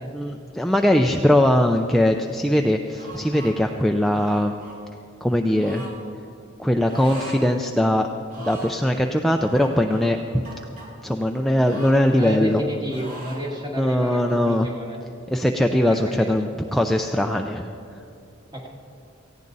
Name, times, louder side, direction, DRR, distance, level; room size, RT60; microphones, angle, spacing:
voice 1, 0.1-4.5 5.2-5.9 6.6-8.1 8.4-10.4 11.0-12.6 13.8-14.7 15.3-17.7, left 1 dB, ahead, 3 dB, 0.4 m, -21 dB
sound 1, 2.9-3.5 4.1-4.8 5.5-6.0 6.8-7.4 7.8-7.9 8.2-8.8 9.5-10.9 11.6-12.6 12.9-13.5, right 1 dB, 40° right, 2.6 m, -40 dB
voice 2, 12.1-15.0 15.9-16.3 18.5-18.7, equal, 20° right, -1 dB, 2.0 m, -31 dB
18.0 x 15.0 x 4.0 m, 2.6 s
head